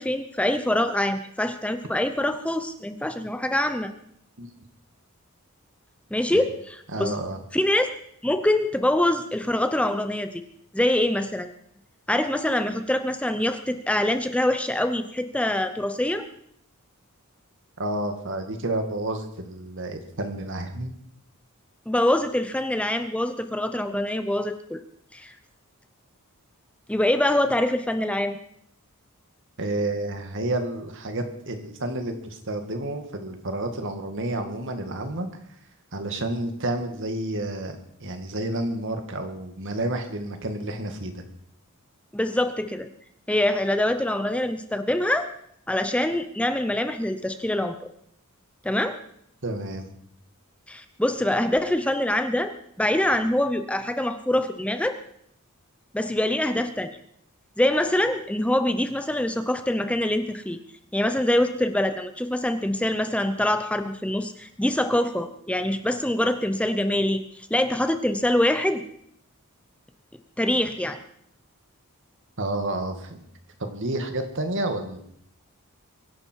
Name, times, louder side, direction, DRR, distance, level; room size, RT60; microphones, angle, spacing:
voice 1, 0.0-3.9 6.1-7.1 7.5-7.9 8.2-10.4 10.7-11.5 12.1-16.3 21.9-24.8 25.1-25.3 26.9-28.4 42.1-42.9 43.3-45.3 45.7-47.7 48.6-49.0 50.7-52.5 52.8-55.0 55.9-56.9 57.6-60.6 60.9-68.8 70.4-71.0, left 1 dB, 5° left, 8 dB, 0.7 m, -24 dB
voice 2, 6.9-7.4 17.8-20.9 29.6-35.3 35.9-41.2 49.4-49.9 72.4-73.3 73.6-75.0, right 1 dB, 60° right, 6 dB, 2.1 m, -30 dB
23.5 x 11.0 x 4.6 m, 0.70 s
head